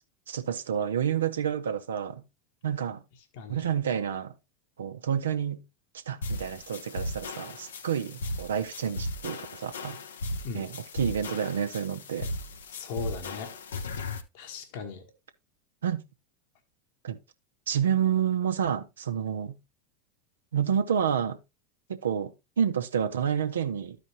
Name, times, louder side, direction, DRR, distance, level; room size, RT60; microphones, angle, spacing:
voice 1, 0.3-2.2 2.6-3.0 3.5-4.3 4.8-5.6 6.1-10.0 10.5-12.3 15.8-16.0 17.0-17.2 17.7-19.6 20.5-21.4 21.9-24.0, right 8 dB, 75° right, 0.8 m, -29 dB
sound 1, 6.2-14.2, left 2 dB, 75° left, 0.8 m, -36 dB
voice 2, 12.7-13.5 14.3-15.1, left 5 dB, 55° left, 1.2 m, -38 dB
13.0 x 5.0 x 2.7 m
figure-of-eight pair, 80°, 0 cm